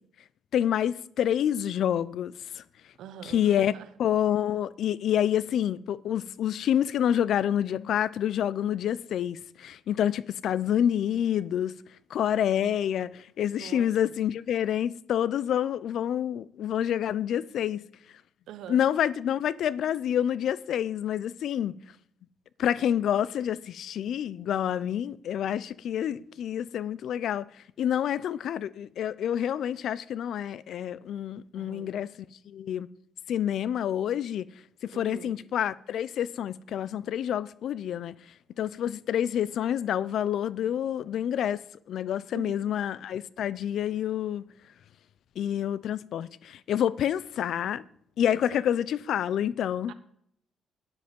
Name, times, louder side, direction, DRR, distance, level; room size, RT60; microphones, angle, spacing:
voice 1, 0.5-2.6 3.2-3.7 4.0-11.7 12.1-17.8 18.7-21.7 22.6-27.5 27.8-32.1 32.5-32.9 33.3-34.5 34.8-38.1 38.6-41.6 41.9-44.5 45.4-47.8 48.2-49.9, left 10 dB, 70° left, 0.5 m, -28 dB
voice 2, 3.0-3.9 13.5-14.2 18.5-18.8 26.1-26.2 31.5-31.9 34.9-35.4 42.3-42.7 48.3-48.6 49.9-50.0, right 10 dB, 85° right, 1.1 m, -44 dB
13.0 x 10.5 x 5.3 m
cardioid pair, 90°, 0 cm